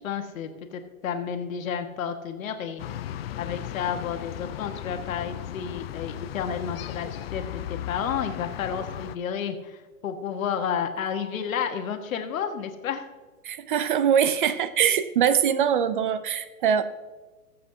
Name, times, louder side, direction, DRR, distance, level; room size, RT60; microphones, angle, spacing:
voice 1, 0.0-2.8 3.4-13.1, left 7 dB, 70° left, 6 dB, 1.4 m, -31 dB
sound 1, 2.8-9.2, left 11 dB, 45° left, 0.4 m, -36 dB
voice 2, 13.4-16.8, right 8 dB, 40° right, 14 dB, 0.5 m, -23 dB
20.0 x 7.6 x 2.8 m, 1.3 s
hypercardioid pair, 150°, 43 cm